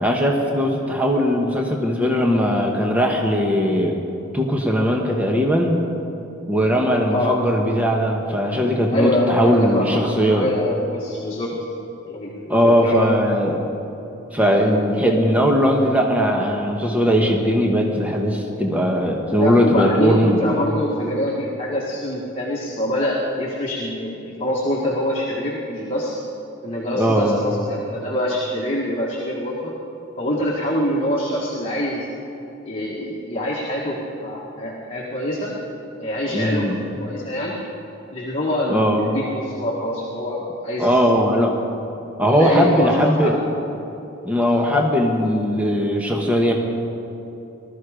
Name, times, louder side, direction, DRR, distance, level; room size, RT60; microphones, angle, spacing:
voice 1, 0.0-4.0 4.3-5.8 6.5-10.5 12.5-13.6 14.3-20.4 27.0-27.5 36.3-36.8 38.7-39.1 40.8-41.5 42.2-43.4 44.2-46.5, equal, 5° right, 1 dB, 1.2 m, -19 dB
voice 2, 8.9-11.5 12.0-13.1 19.3-26.2 26.6-29.7 30.2-32.1 32.6-35.5 36.0-36.7 37.0-37.6 38.1-40.9 42.3-43.4 44.4-44.6, left 1 dB, 30° left, -4 dB, 1.7 m, -25 dB
19.5 x 13.5 x 5.1 m, 2.9 s
head